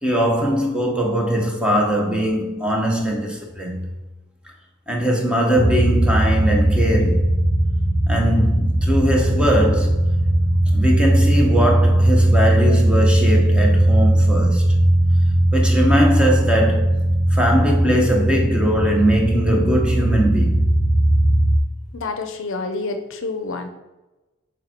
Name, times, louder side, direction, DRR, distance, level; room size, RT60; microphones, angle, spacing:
voice 1, 0.0-3.9 4.9-7.3 8.1-10.0 10.7-14.6 15.5-20.7, equal, 5° right, 1.1 m, -20 dB
sound 1, 5.6-21.6, right 1 dB, 20° right, 1.4 m, -18 dB
voice 2, 21.9-23.7, left 3 dB, 60° left, 0.6 m, -28 dB
6.8 x 4.6 x 4.5 m
head